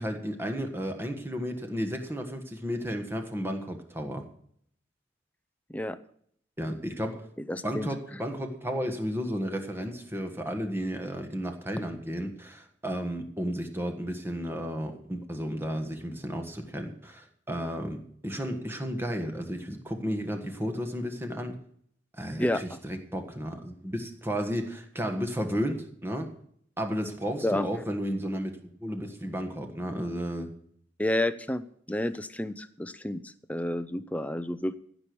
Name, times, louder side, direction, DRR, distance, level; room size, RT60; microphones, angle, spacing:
voice 1, 0.0-4.3 6.6-7.3 7.6-21.6 22.2-26.3 26.8-30.5, equal, 15° right, 5 dB, 1.5 m, -33 dB
voice 2, 7.5-7.9 22.4-22.8 27.4-27.7 31.0-31.6 31.9-34.8, left 1 dB, 10° left, 12 dB, 0.5 m, -30 dB
15.5 x 6.2 x 6.9 m, 0.64 s
head